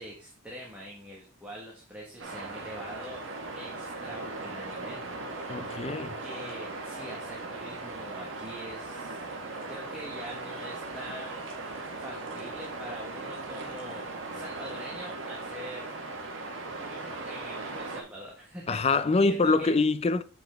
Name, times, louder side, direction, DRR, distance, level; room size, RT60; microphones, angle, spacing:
voice 1, 0.0-5.7 6.2-9.3 9.7-15.9 16.8-19.7, equal, 5° right, 1.4 m, -44 dB
sound 1, 2.2-18.0, right 3 dB, 70° right, 1.4 m, -38 dB
voice 2, 5.5-6.2 18.7-20.2, left 3 dB, 30° left, 0.4 m, -25 dB
7.2 x 5.5 x 3.4 m
head